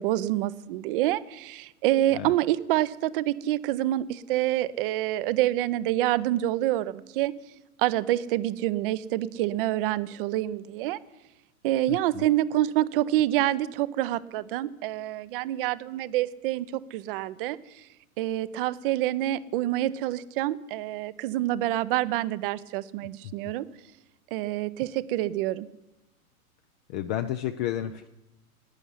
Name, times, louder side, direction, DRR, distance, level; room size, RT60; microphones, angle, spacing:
voice 1, 0.0-7.3 7.8-11.0 11.6-17.6 18.2-23.6 24.3-25.7, right 14 dB, 40° right, 17 dB, 0.7 m, -27 dB
voice 2, 11.9-12.3 23.2-23.3 26.9-28.1, left 11 dB, 30° left, 9 dB, 0.5 m, -32 dB
11.5 x 9.0 x 9.7 m, 0.97 s
hypercardioid pair, 110°, 45 cm